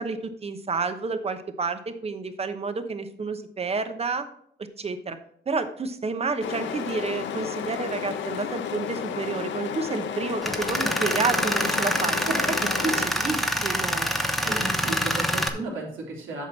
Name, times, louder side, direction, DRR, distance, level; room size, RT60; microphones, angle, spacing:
voice 1, 0.0-4.3 4.8-5.2 5.5-12.2 12.5-12.6 12.8-14.1, right 4 dB, 30° right, 9 dB, 0.9 m, -30 dB
sound 1, 6.4-13.1, left 8 dB, 70° left, 0.8 m, -32 dB
Tools, 10.4-15.5, equal, ahead, 0.9 m, -26 dB
voice 2, 14.2-16.5, right 2 dB, 85° right, -2 dB, 3.0 m, -34 dB
8.3 x 5.8 x 4.6 m, 0.66 s
cardioid pair, 90°, 20 cm